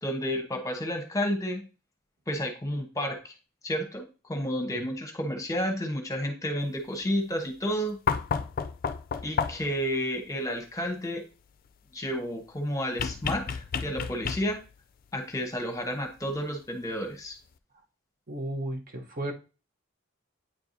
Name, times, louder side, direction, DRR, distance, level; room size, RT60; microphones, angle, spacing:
voice 1, 0.0-1.6 2.3-3.3 3.6-8.0 9.2-11.2 11.9-14.6 15.1-17.4, equal, 15° left, 4 dB, 1.1 m, -31 dB
sound 1, 8.1-9.8 13.0-14.7 16.3-16.4, left 6 dB, 45° left, 0.4 m, -31 dB
voice 2, 18.3-19.3, right 1 dB, 45° right, 3 dB, 1.0 m, -33 dB
8.7 x 4.6 x 2.7 m, 0.32 s
head